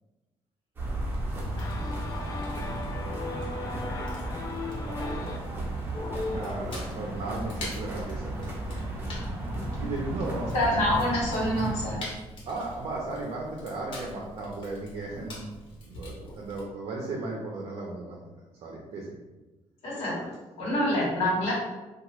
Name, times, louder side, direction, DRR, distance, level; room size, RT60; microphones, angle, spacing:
sound 1, 0.8-12.0, right 1 dB, 20° right, 0.6 m, -34 dB
Fire, 1.3-16.6, left 1 dB, 50° left, 0.9 m, -45 dB
voice 1, 1.6-5.4 5.9-6.8 16.2-16.4 20.0-20.4, left 2 dB, 35° left, 0.3 m, -37 dB
voice 2, 6.3-8.9 9.5-10.5 12.5-15.4 15.8-18.2 18.6-19.2, right 2 dB, 60° right, 0.5 m, -36 dB
voice 3, 10.5-12.0 19.8-20.1 20.6-21.5, left 1 dB, 80° left, 1.1 m, -26 dB
2.8 x 2.3 x 3.0 m
cardioid pair, 160°, 11 cm